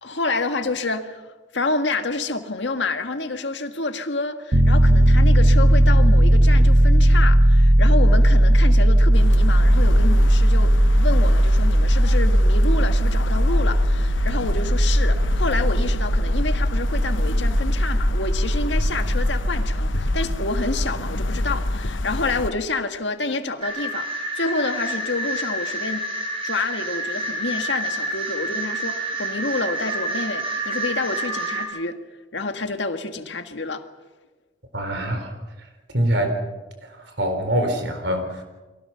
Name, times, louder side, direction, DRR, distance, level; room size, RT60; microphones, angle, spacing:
voice 1, 0.0-1.3 1.5-26.1 26.4-32.0 32.3-33.8, left 3 dB, 65° left, 1.8 m, -28 dB
Piano, 4.5-21.2, right 1 dB, 50° right, 1.1 m, -17 dB
sound 1, 9.1-22.5, left 1 dB, 85° left, 1.0 m, -25 dB
sound 2, 23.6-31.6, right 1 dB, 30° right, 6.3 m, -28 dB
voice 2, 34.7-35.3 35.9-36.4 36.8-38.4, right 1 dB, 65° right, 4.1 m, -24 dB
30.0 x 23.5 x 5.8 m
head